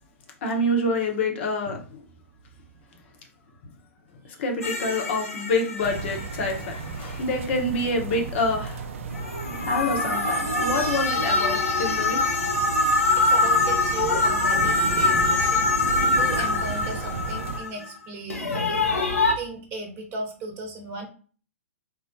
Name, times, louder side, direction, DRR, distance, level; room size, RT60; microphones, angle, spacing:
voice 1, 0.4-2.0 4.2-8.9 9.6-12.2, left 2 dB, 55° left, 2 dB, 0.9 m, -27 dB
sound 1, 4.6-6.9 9.1-17.9 18.3-19.3, left 3 dB, 85° left, 0.7 m, -24 dB
sound 2, 5.8-17.6, right 4 dB, 65° right, 0.4 m, -34 dB
voice 2, 13.1-21.1, right 3 dB, 30° right, 3 dB, 0.9 m, -36 dB
3.8 x 2.1 x 2.6 m, 0.40 s
figure-of-eight pair, 105°, 8 cm